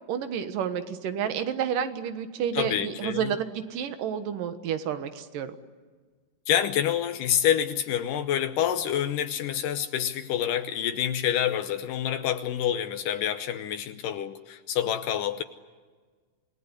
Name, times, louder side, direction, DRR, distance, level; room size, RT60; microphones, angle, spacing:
voice 1, 0.1-5.6, right 8 dB, 80° right, 10 dB, 3.0 m, -30 dB
voice 2, 2.5-3.3 6.5-15.4, left 10 dB, 80° left, 8 dB, 2.5 m, -27 dB
27.0 x 19.5 x 9.8 m, 1.5 s
omnidirectional pair, 3.8 m